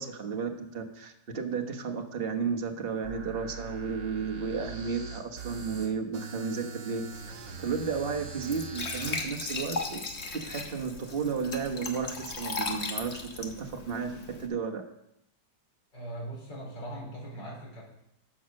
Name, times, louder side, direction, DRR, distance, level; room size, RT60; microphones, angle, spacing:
voice 1, 0.0-7.2 7.6-10.0 10.3-14.1 14.4-14.8, right 5 dB, 35° right, 3 dB, 1.3 m, -33 dB
sound 1, 3.0-9.2, right 5 dB, 85° right, 1.8 m, -42 dB
Glass / Trickle dribble / Fill (with liquid), 7.1-14.5, left 3 dB, 40° left, 1.4 m, -38 dB
voice 2, 15.9-17.8, right 1 dB, 80° left, -3 dB, 4.8 m, -40 dB
12.0 x 7.4 x 6.4 m, 0.83 s
omnidirectional pair, 1.9 m